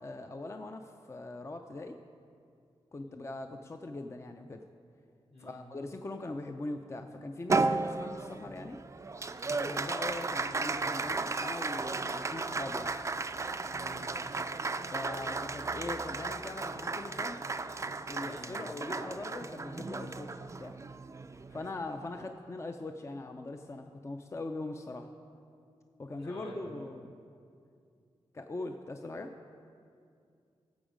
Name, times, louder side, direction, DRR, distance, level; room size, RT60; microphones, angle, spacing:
voice 1, 0.0-2.0 2.9-4.6 5.4-8.8 9.5-12.9 14.9-17.4 18.1-20.8 21.5-25.1 26.0-27.2 28.3-29.3, left 2 dB, 25° left, 6 dB, 0.5 m, -41 dB
voice 2, 3.0-3.3 5.3-5.6 13.7-14.0 18.2-18.5 26.2-26.7, left 2 dB, 65° left, -3 dB, 2.8 m, -50 dB
Applause, 7.5-22.1, right 3 dB, 30° right, 0.4 m, -35 dB
15.5 x 7.1 x 5.1 m, 2.4 s
wide cardioid pair, 90°, 10 cm